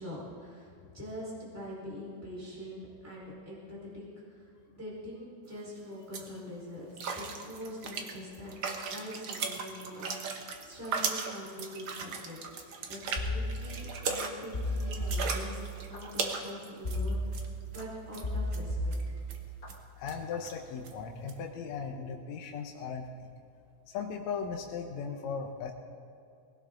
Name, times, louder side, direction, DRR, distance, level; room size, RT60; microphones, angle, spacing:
voice 1, 0.0-12.4 12.9-19.2, left 1 dB, 5° right, -6 dB, 4.2 m, -44 dB
sound 1, 5.5-5.6 5.9-6.3 7.0-17.5 17.7-17.9 18.1-18.6 18.9-19.0 19.3-19.4 19.7-19.8 20.1-20.2 20.4-20.5 20.8-20.9 21.3-21.4, right 5 dB, 60° right, 1.6 m, -37 dB
sound 2, 13.2-14.1 14.5-16.0 16.8-17.8 18.2-19.7 20.1-20.5, left 1 dB, 25° left, 1.2 m, -34 dB
voice 2, 20.0-23.1 23.9-25.7, left 6 dB, 70° left, 1 dB, 2.1 m, -37 dB
20.0 x 17.0 x 3.8 m, 2.4 s
omnidirectional pair, 3.5 m